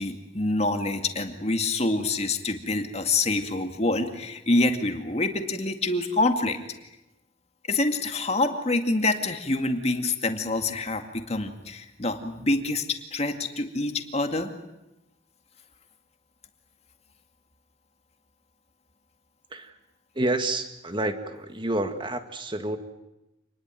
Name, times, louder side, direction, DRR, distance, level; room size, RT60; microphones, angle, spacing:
voice 1, 0.0-6.6 7.7-14.5, left 2 dB, 35° left, 6 dB, 2.2 m, -26 dB
voice 2, 20.2-22.8, right 2 dB, 25° right, 8 dB, 1.9 m, -29 dB
27.5 x 20.5 x 9.2 m, 0.94 s
head